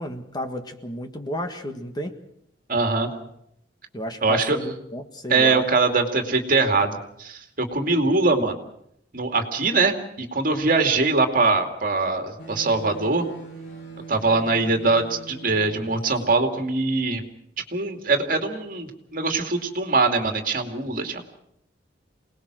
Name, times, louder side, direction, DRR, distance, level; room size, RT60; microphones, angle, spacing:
voice 1, 0.0-2.1 3.9-5.7, equal, 25° left, 6 dB, 1.7 m, -32 dB
voice 2, 2.7-3.1 4.2-4.6 5.3-8.6 9.1-13.2 14.1-17.2 17.7-21.3, right 3 dB, 50° right, 5 dB, 2.6 m, -22 dB
sound 1, 12.4-16.3, right 4 dB, 75° left, 3.0 m, -41 dB
27.5 x 19.0 x 6.3 m, 0.74 s
head